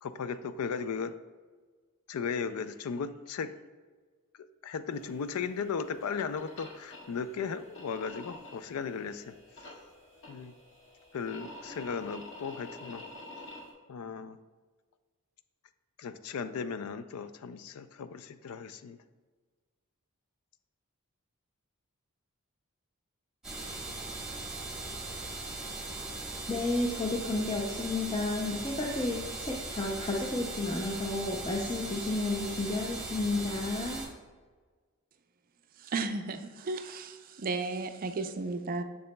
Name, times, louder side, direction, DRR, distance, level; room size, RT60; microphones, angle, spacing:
voice 1, 0.0-1.1 2.1-3.5 4.6-9.3 10.3-10.5 11.1-13.0 13.9-14.4 16.0-19.0, left 6 dB, 90° left, 12 dB, 0.4 m, -36 dB
sound 1, 4.9-13.7, left 2 dB, 65° left, 1.7 m, -49 dB
sound 2, 23.4-34.1, right 2 dB, 5° right, 1.1 m, -39 dB
voice 2, 26.5-34.0, left 2 dB, 25° left, -1 dB, 0.5 m, -32 dB
voice 3, 35.8-38.8, right 3 dB, 40° right, 8 dB, 0.4 m, -34 dB
6.8 x 6.6 x 2.2 m, 1.4 s
head